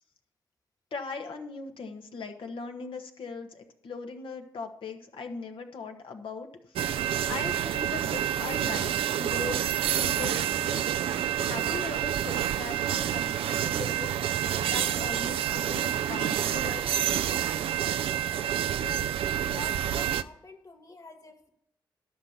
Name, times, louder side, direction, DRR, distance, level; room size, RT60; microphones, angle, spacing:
voice 1, 0.9-6.5 7.3-10.9 11.4-14.1 14.6-16.9, left 4 dB, 65° left, 4 dB, 1.4 m, -39 dB
sound 1, 6.7-20.2, right 10 dB, 75° right, 0.4 m, -28 dB
voice 2, 18.7-19.1 19.5-21.5, left 3 dB, 40° left, 4 dB, 2.2 m, -46 dB
12.0 x 5.8 x 6.8 m, 0.75 s
supercardioid pair, 50°, 9 cm